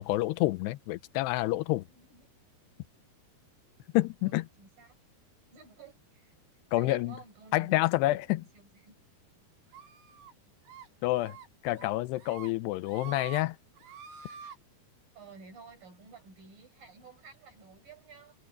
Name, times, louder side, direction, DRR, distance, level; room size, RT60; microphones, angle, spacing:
voice 1, 0.0-1.9 3.9-4.5 6.7-7.2 7.5-8.5 11.0-11.4 11.6-13.6, left 18 dB, 85° left, 2.9 m, -28 dB
voice 2, 1.9-2.3 4.2-4.9 5.5-6.3 6.7-7.8 8.4-8.9 15.1-18.4, right 5 dB, 55° right, 8.3 m, -52 dB
sound 1, 9.7-10.3 10.7-10.9 11.2-11.5 11.8-12.5 12.8-13.4 13.8-14.6, right 7 dB, 85° right, 4.6 m, -46 dB
omnidirectional pair, 4.8 m